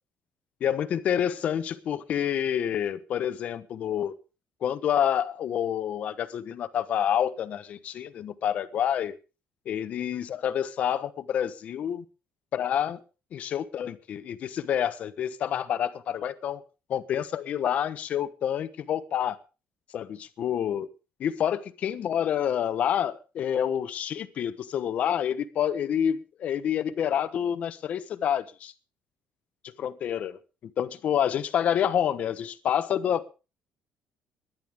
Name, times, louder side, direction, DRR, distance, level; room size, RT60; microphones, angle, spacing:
voice 1, 0.6-4.1 4.6-9.2 9.7-12.0 12.5-13.0 13.3-16.6 16.9-19.4 19.9-20.9 21.2-28.7 29.6-33.3, left 9 dB, 45° left, 1.1 m, -28 dB
19.5 x 11.5 x 3.6 m
cardioid pair, 170°, 3 cm